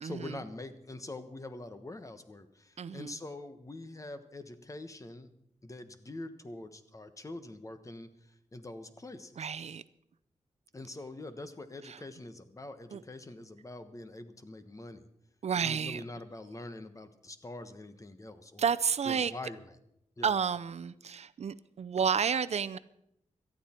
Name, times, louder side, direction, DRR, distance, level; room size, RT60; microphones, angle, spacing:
voice 1, 0.0-5.3 5.6-9.8 10.7-15.1 15.5-18.7 19.0-19.8 20.2-20.4, left 2 dB, 25° left, 10 dB, 1.2 m, -44 dB
voice 2, 2.8-3.1 9.4-9.8 12.9-13.0 15.4-16.0 18.6-19.3 20.2-22.8, right 7 dB, 65° right, 15 dB, 0.5 m, -31 dB
18.5 x 13.0 x 4.4 m, 0.77 s
wide cardioid pair, 105°, 12 cm